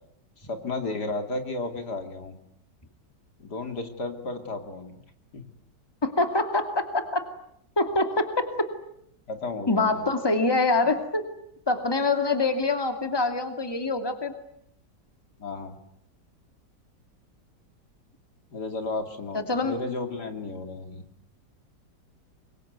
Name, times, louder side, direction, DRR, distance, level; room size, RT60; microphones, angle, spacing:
voice 1, 0.4-2.4 3.4-4.9 5.3-5.4 9.3-10.1 15.4-15.8 18.5-21.0, left 3 dB, 65° left, 7 dB, 3.2 m, -33 dB
voice 2, 6.0-7.3 7.8-8.7 9.7-11.2 11.7-14.3 19.3-19.8, left 3 dB, 15° left, 7 dB, 2.4 m, -25 dB
26.0 x 23.0 x 9.4 m, 0.72 s
omnidirectional pair, 1.9 m